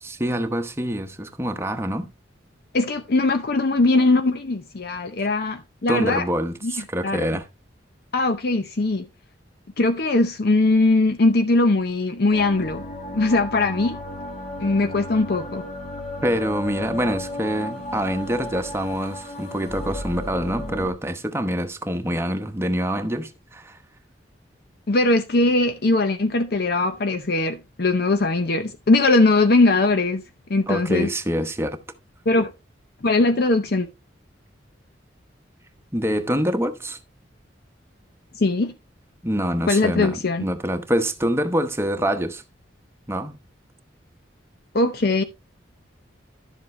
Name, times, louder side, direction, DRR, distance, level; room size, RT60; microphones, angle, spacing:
voice 1, 0.0-2.1 5.9-7.5 16.2-23.8 30.7-31.8 35.9-37.0 39.2-42.4 43.1-43.4, equal, 15° right, 1.0 m, -25 dB
voice 2, 2.7-6.3 6.6-6.7 7.0-7.3 8.1-9.1 9.8-12.9 13.1-14.0 14.6-15.7 24.9-30.2 30.5-31.1 32.3-32.5 33.0-33.9 38.3-38.7 39.7-40.4 44.7-45.2, left 2 dB, 55° left, 0.7 m, -20 dB
sound 1, 12.3-20.9, left 1 dB, 40° left, 1.9 m, -34 dB
11.5 x 7.4 x 3.1 m
head